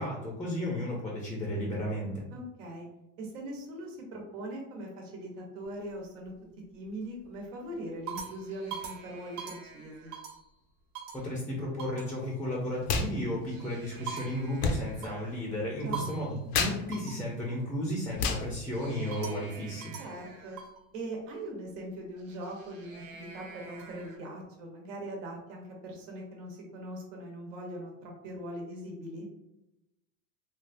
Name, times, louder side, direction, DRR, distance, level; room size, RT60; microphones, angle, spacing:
voice 1, 0.0-2.2 11.1-16.3 16.6-19.9, equal, 5° left, -3 dB, 0.4 m, -34 dB
voice 2, 2.3-2.9 3.2-6.3 6.7-10.1 15.7-16.1 20.0-20.6 20.9-29.3, right 1 dB, 90° right, 0 dB, 1.1 m, -41 dB
sound 1, 5.6-6.3 6.8-7.2 7.7-10.5 10.9-11.3 11.8-12.1 13.3-15.4 15.9-16.3 16.9-17.3 18.7-20.8 22.2-24.2, right 7 dB, 55° right, 0.9 m, -44 dB
sound 2, 12.8-13.1 13.4-19.6, left 5 dB, 85° left, 0.6 m, -34 dB
3.5 x 2.3 x 2.5 m, 0.90 s
supercardioid pair, 145°, 37 cm